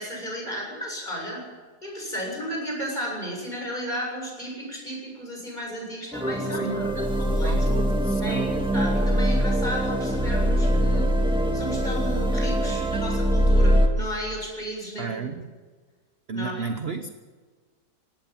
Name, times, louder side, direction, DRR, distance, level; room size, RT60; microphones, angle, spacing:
voice 1, 0.0-1.4 1.8-7.6 8.2-11.1 11.5-15.4 16.3-16.6, equal, 25° left, 0 dB, 7.8 m, -34 dB
sound 1, 6.1-13.9, equal, 5° right, 1.7 m, -23 dB
voice 2, 6.5-6.9 7.4-8.6 15.0-15.4 16.3-17.1, right 5 dB, 45° right, 8 dB, 1.0 m, -32 dB
19.0 x 18.0 x 7.6 m, 1.4 s
omnidirectional pair, 1.9 m